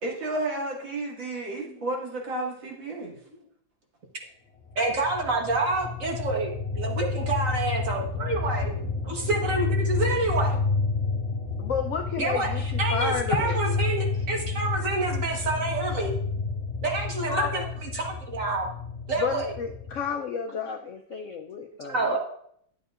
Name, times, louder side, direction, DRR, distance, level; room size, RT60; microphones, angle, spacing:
voice 1, 0.0-3.1, right 2 dB, 80° right, -4 dB, 2.9 m, -32 dB
sound 1, 4.7-20.1, left 4 dB, 40° left, 1.3 m, -30 dB
voice 2, 4.7-10.6 12.2-16.2 16.8-18.7 19.1-19.5 21.1-21.2 21.9-22.2, right 2 dB, 45° right, 1 dB, 1.6 m, -28 dB
voice 3, 11.6-13.6 17.3-17.6 19.2-22.2, left 6 dB, 85° left, 4 dB, 0.6 m, -31 dB
11.5 x 8.0 x 2.5 m, 0.68 s
omnidirectional pair, 2.0 m